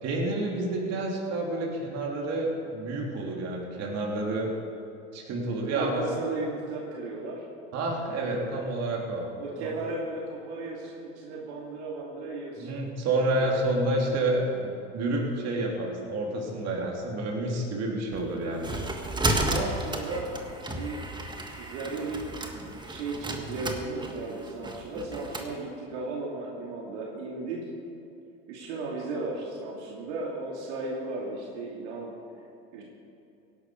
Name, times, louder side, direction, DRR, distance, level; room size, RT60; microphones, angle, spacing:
voice 1, 0.0-4.5 5.1-6.0 7.7-9.2 9.5-9.7 12.6-18.8, right 2 dB, 45° right, -1 dB, 3.6 m, -29 dB
voice 2, 5.6-7.5 8.1-8.6 9.4-12.8 13.1-14.2 19.1-20.3 20.6-21.1 21.6-22.6 22.9-27.6 28.5-32.1 32.7-32.8, right 3 dB, 70° right, -3 dB, 2.9 m, -35 dB
sound 1, 18.1-25.5, right 1 dB, 10° right, 1.6 m, -33 dB
16.5 x 11.5 x 5.4 m, 2.8 s
hypercardioid pair, 95°, 36 cm